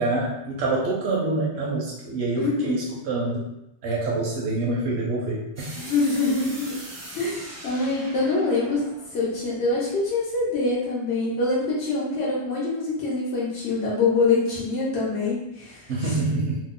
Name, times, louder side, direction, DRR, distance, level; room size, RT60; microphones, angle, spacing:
voice 1, 0.0-3.5 3.8-5.7 15.9-16.6, right 2 dB, 80° right, -3 dB, 0.8 m, -26 dB
voice 2, 2.3-2.8 5.9-6.8 7.1-16.1, left 3 dB, 85° left, -6 dB, 1.0 m, -25 dB
sound 1, 5.6-10.4, right 1 dB, 25° right, 0.4 m, -41 dB
2.8 x 2.0 x 3.6 m, 0.88 s
omnidirectional pair, 1.1 m